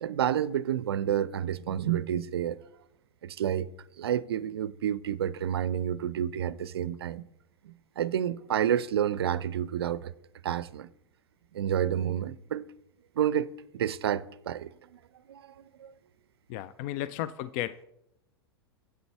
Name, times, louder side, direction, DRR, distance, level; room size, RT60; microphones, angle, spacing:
voice 1, 0.0-2.6 3.2-3.7 4.0-7.2 7.6-10.1 10.4-10.9 11.5-12.6 13.2-15.0 15.3-15.9, right 9 dB, 65° right, 0.5 m, -30 dB
voice 2, 16.5-17.8, left 13 dB, 40° left, 0.4 m, -34 dB
8.0 x 7.9 x 4.6 m
figure-of-eight pair, 95°, 14 cm